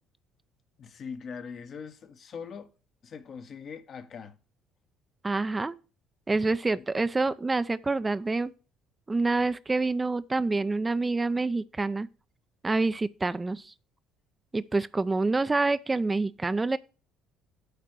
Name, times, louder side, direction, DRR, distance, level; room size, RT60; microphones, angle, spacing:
voice 1, 0.8-2.7 3.0-4.4, left 6 dB, 50° left, 0.8 m, -41 dB
voice 2, 5.2-5.7 6.3-8.5 9.1-12.1 12.6-13.7 14.5-16.8, right 3 dB, 20° right, 0.4 m, -27 dB
8.1 x 4.2 x 6.2 m
hypercardioid pair, 55°, 0 cm